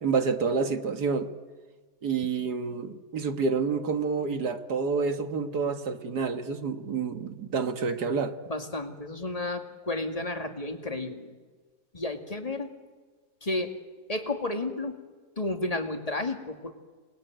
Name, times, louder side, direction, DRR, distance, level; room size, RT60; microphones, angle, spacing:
voice 1, 0.0-1.3 2.0-8.4, right 5 dB, 80° right, 2.2 m, -28 dB
voice 2, 8.5-11.2 11.9-12.7 13.4-13.7 14.1-15.0 15.4-16.7, left 2 dB, 20° left, 2.4 m, -32 dB
29.5 x 21.0 x 9.4 m
omnidirectional pair, 1.7 m